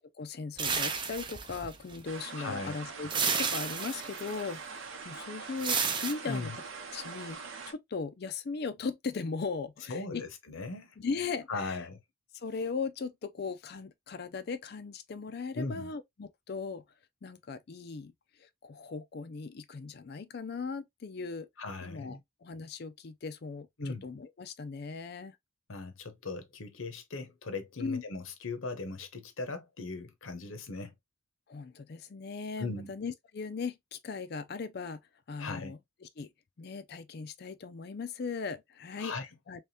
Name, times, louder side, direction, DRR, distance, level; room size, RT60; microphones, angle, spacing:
voice 1, 0.2-6.5 6.9-10.2 11.0-11.8 12.3-16.8 17.2-18.1 18.4-21.5 21.8-25.4 27.8-28.0 31.5-35.0 35.3-36.3 36.6-39.1 39.5-39.6, left 4 dB, 50° left, 0.4 m, -38 dB
sound 1, 0.6-2.0 3.1-4.3 5.6-6.1, right 6 dB, 25° right, 0.4 m, -31 dB
sound 2, 2.0-7.7, right 5 dB, 70° right, 0.8 m, -43 dB
voice 2, 2.4-2.8 6.3-6.6 9.9-11.0 11.5-12.0 15.5-15.9 21.6-22.2 23.8-24.1 25.7-30.9 32.6-32.9 35.4-35.7 39.0-39.3, left 3 dB, 75° left, 0.9 m, -38 dB
3.4 x 3.2 x 2.7 m
head